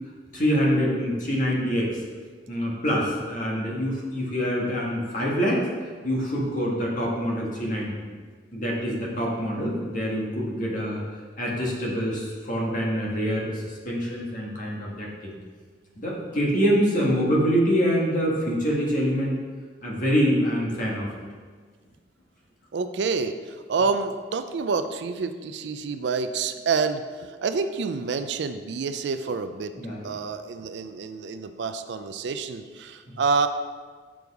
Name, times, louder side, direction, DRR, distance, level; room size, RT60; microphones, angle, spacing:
voice 1, 0.3-2.0 2.5-5.7 6.0-8.0 8.5-11.0 11.4-15.3 16.0-19.4 19.8-21.1 29.8-30.1 33.1-33.2, equal, 45° left, -4 dB, 1.6 m, -25 dB
voice 2, 22.7-29.7 30.0-33.5, right 4 dB, 65° right, 10 dB, 0.4 m, -28 dB
6.2 x 5.3 x 4.7 m, 1.5 s
head